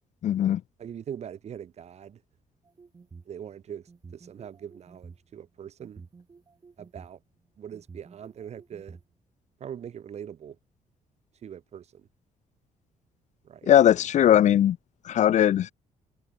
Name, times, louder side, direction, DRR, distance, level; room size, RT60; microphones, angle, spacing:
voice 1, 0.2-0.6 13.7-14.8 15.0-15.7, left 11 dB, 60° left, 1.0 m, -19 dB
voice 2, 0.8-2.2 3.3-6.0 6.8-7.2 7.6-9.0 9.6-10.6 11.4-12.1 13.4-13.7, right 9 dB, 50° right, 2.9 m, -42 dB
sound 1, 2.6-3.3 3.9-5.3 5.8-7.1 7.7-9.0, right 4 dB, 30° right, 6.2 m, -49 dB
cardioid pair, 125°, 14 cm